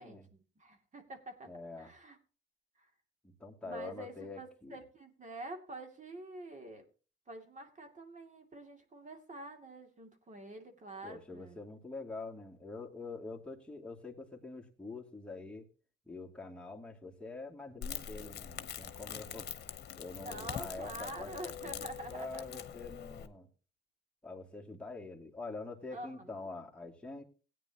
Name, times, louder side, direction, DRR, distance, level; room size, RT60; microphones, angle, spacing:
voice 1, 0.0-1.5 1.8-2.2 2.8-2.9 3.6-6.8 7.3-11.6 20.2-22.6 25.9-26.5, right 1 dB, 40° right, 6 dB, 2.6 m, -47 dB
voice 2, 1.5-1.9 3.2-4.8 11.0-15.7 16.1-19.5 20.0-23.5 24.2-27.2, left 3 dB, 5° left, -1 dB, 2.5 m, -45 dB
Crackle, 17.8-23.3, left 8 dB, 55° left, 1.2 m, -44 dB
17.0 x 9.5 x 2.9 m, 0.36 s
cardioid pair, 90°, 20 cm